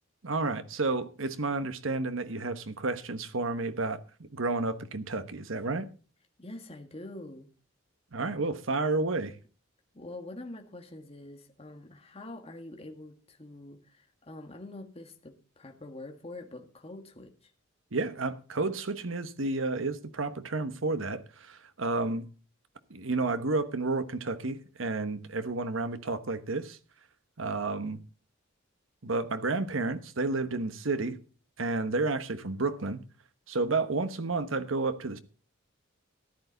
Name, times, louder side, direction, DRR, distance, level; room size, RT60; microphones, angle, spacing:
voice 1, 0.2-5.9 8.1-9.3 17.9-22.2 22.9-26.8 27.4-28.0 29.0-31.2 31.6-33.0 33.5-35.2, right 3 dB, 70° right, 1.2 m, -31 dB
voice 2, 6.4-7.5 9.9-17.5, left 2 dB, 30° left, 1.6 m, -45 dB
14.0 x 10.5 x 4.0 m
head